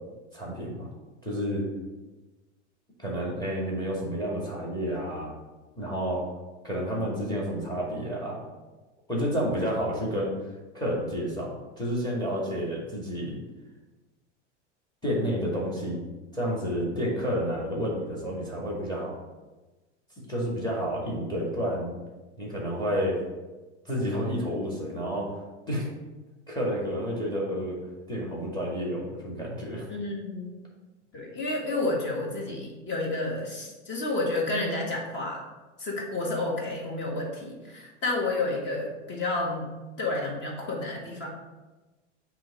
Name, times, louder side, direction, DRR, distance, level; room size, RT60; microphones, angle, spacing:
voice 1, 0.3-0.9 1.2-1.7 3.0-5.3 5.8-6.2 6.6-8.4 9.1-10.3 10.7-13.4 15.0-16.0 16.3-19.1 20.3-22.0 22.4-23.2 23.9-25.3 25.7-25.9 26.5-27.8 28.1-29.8, equal, 10° left, -3 dB, 2.1 m, -30 dB
voice 2, 29.9-30.6 31.1-35.4 35.8-39.7 40.0-41.3, left 2 dB, 30° left, -1 dB, 1.8 m, -30 dB
7.6 x 2.9 x 4.9 m, 1.2 s
hypercardioid pair, 100°, 35 cm